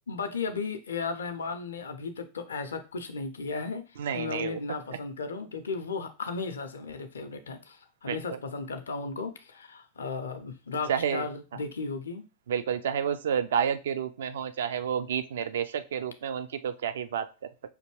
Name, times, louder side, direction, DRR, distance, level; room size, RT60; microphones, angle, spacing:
voice 1, 0.1-12.2, left 4 dB, 70° left, 7 dB, 0.5 m, -35 dB
voice 2, 4.0-4.6 8.1-8.4 10.9-11.3 12.5-17.3, right 8 dB, 60° right, 11 dB, 0.4 m, -30 dB
5.0 x 2.7 x 3.0 m, 0.31 s
figure-of-eight pair, 90°, 0 cm